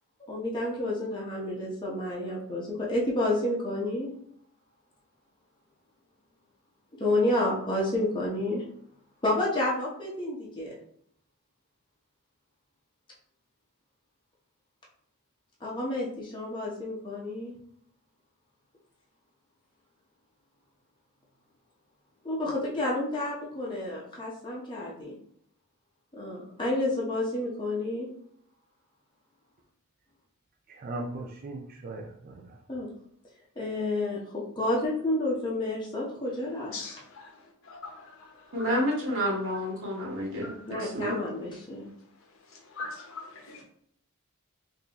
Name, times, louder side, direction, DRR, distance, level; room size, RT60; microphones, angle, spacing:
voice 1, 0.3-4.1 7.0-8.6 9.2-10.7 15.6-17.6 22.2-25.1 26.2-28.1 32.7-32.9 33.6-36.7 40.7-41.8, left 1 dB, 20° left, -5 dB, 0.8 m, -30 dB
voice 2, 30.7-32.6, right 2 dB, 40° right, 1 dB, 0.3 m, -38 dB
voice 3, 36.7-37.3 37.6-38.3 38.6-38.8 40.4-40.6 42.7-43.6, left 3 dB, 65° left, 1 dB, 0.9 m, -41 dB
voice 4, 38.5-41.2, equal, 65° right, -5 dB, 1.3 m, -30 dB
3.7 x 2.6 x 2.9 m, 0.66 s
head